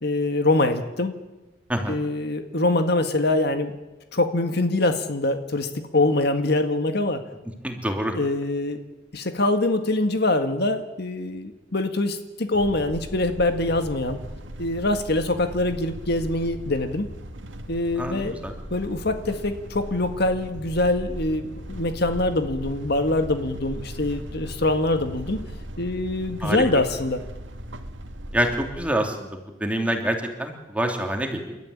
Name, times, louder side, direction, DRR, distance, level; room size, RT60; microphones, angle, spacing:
voice 1, 0.0-1.2 1.9-3.8 4.1-7.2 8.1-8.8 9.1-14.2 14.6-17.1 17.7-18.4 18.7-25.4 25.8-27.2, left 2 dB, 60° left, 7 dB, 1.8 m, -24 dB
voice 2, 7.6-8.1 18.0-18.5 26.4-26.6 28.3-31.6, right 1 dB, 5° right, 3 dB, 3.0 m, -26 dB
sound 1, 12.5-28.9, equal, 75° right, 2.1 m, -38 dB
29.5 x 13.0 x 9.9 m, 1.1 s
head